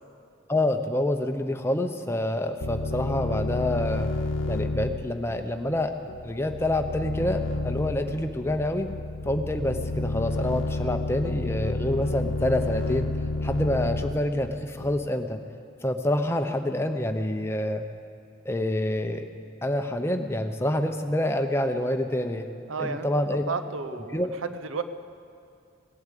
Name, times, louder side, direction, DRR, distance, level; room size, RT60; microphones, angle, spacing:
voice 1, 0.5-4.1 4.5-5.9 6.2-8.9 9.2-13.1 13.4-15.4 15.8-17.8 18.4-19.2 19.6-22.5 22.8-23.4 24.1-24.3, left 1 dB, 10° left, 5 dB, 0.7 m, -27 dB
sound 1, 2.6-15.1, left 2 dB, 75° left, 0.8 m, -31 dB
voice 2, 22.7-24.8, right 4 dB, 90° right, 11 dB, 0.7 m, -33 dB
17.5 x 8.5 x 8.4 m, 2.5 s
head